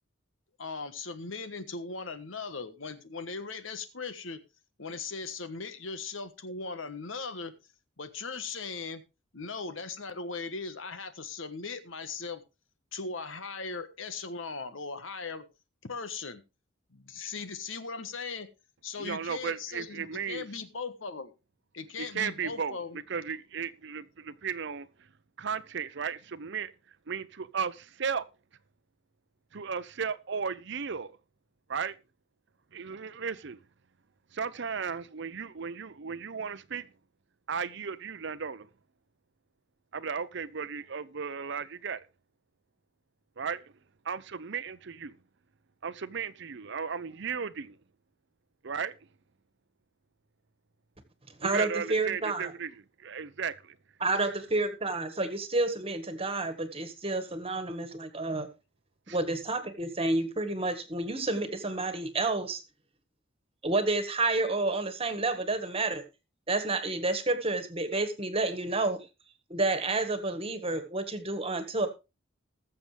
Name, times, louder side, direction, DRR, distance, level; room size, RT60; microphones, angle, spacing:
voice 1, 0.6-4.4 4.8-7.5 8.0-9.0 9.3-12.4 12.9-15.4 15.8-16.4 16.9-18.5 18.8-21.3 21.7-23.0, left 4 dB, 75° left, 1.3 m, -38 dB
voice 2, 19.0-20.5 22.0-22.8 23.1-24.9 25.4-26.7 27.1-28.3 29.5-31.1 31.7-32.0 32.7-33.6 34.3-36.9 37.5-38.7 39.9-42.0 43.4-43.7 44.0-45.2 45.8-47.8 48.6-49.0 51.4-53.8 54.2-54.3 59.1-59.2, right 6 dB, 60° right, 0.7 m, -35 dB
voice 3, 51.3-52.5 54.0-58.5 59.1-62.6 63.6-66.0 66.5-69.1 69.5-71.9, right 2 dB, 30° right, 1.6 m, -30 dB
20.5 x 7.0 x 3.4 m
head